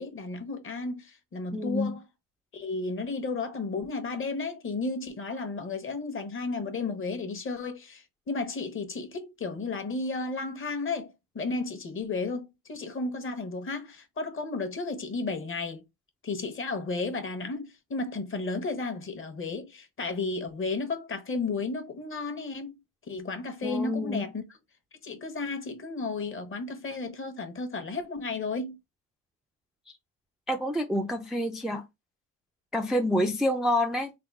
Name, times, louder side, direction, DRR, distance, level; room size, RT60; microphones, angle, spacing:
voice 1, 0.0-2.0 2.5-15.8 16.2-22.7 23.1-24.3 25.0-28.8, left 3 dB, 35° left, 0.9 m, -33 dB
voice 2, 1.5-2.0 23.6-24.3 30.5-31.8 32.7-34.1, left 1 dB, ahead, 0.4 m, -28 dB
3.6 x 2.2 x 3.3 m
cardioid pair, 95°, 35 cm